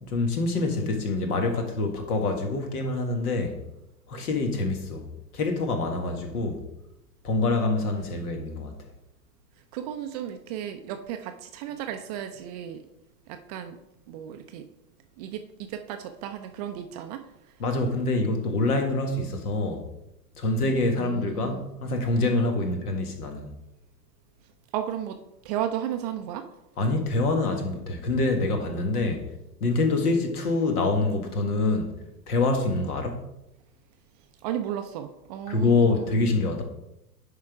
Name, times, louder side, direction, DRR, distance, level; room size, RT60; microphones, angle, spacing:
voice 1, 0.0-3.6 4.1-5.0 5.3-6.6 7.2-8.7 17.6-19.8 20.4-23.5 26.8-29.2 29.6-31.9 32.3-33.2 35.5-36.6, left 3 dB, 65° left, 1.8 m, -26 dB
voice 2, 9.7-12.8 13.3-13.8 14.1-14.7 15.2-17.3 20.6-21.7 22.6-22.8 24.7-26.5 30.0-30.2 32.7-32.9 34.4-36.2, right 10 dB, 30° right, 0.4 m, -34 dB
10.0 x 3.8 x 4.8 m
figure-of-eight pair, 100°, 48 cm